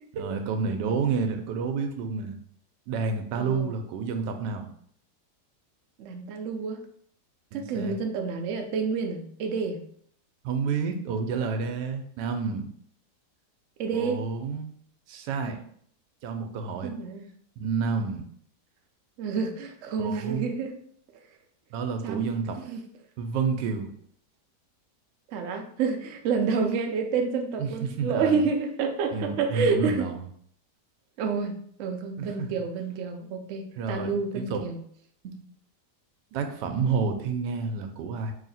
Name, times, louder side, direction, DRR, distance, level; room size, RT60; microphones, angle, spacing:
voice 1, 0.1-2.4 2.9-4.7 7.5-8.0 10.4-12.7 13.9-14.7 15.1-15.6 16.2-16.9 17.6-18.2 20.0-20.5 21.7-22.6 23.2-23.9 27.6-28.4 29.1-30.2 32.2-32.5 33.8-34.6 36.3-38.3, right 5 dB, 90° right, 6 dB, 1.2 m, -29 dB
voice 2, 3.3-3.7 6.0-6.8 7.5-9.8 13.8-14.2 16.8-17.2 19.2-20.7 22.0-22.3 22.6-22.8 25.3-30.1 31.2-34.8 35.2-35.5, right 5 dB, 70° right, 4 dB, 0.7 m, -29 dB
3.1 x 2.8 x 4.0 m, 0.62 s
omnidirectional pair, 1.8 m